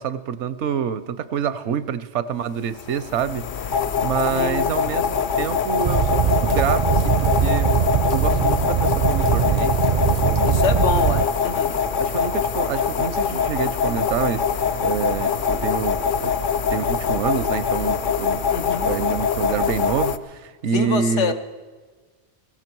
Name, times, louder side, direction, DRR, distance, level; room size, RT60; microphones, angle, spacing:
voice 1, 0.0-7.8 8.1-9.8 10.2-10.6 12.0-16.3 16.7-18.4 18.8-21.3, right 7 dB, 80° right, 14 dB, 1.0 m, -27 dB
sound 1, 2.7-20.2, left 6 dB, 55° left, 0.6 m, -23 dB
voice 2, 4.3-4.8 10.4-11.8 18.5-18.9 20.7-21.3, left 5 dB, 85° left, 7 dB, 1.3 m, -25 dB
Fire, 5.8-11.2, right 7 dB, 55° right, 0.4 m, -21 dB
16.5 x 15.5 x 4.6 m, 1.4 s
omnidirectional pair, 1.2 m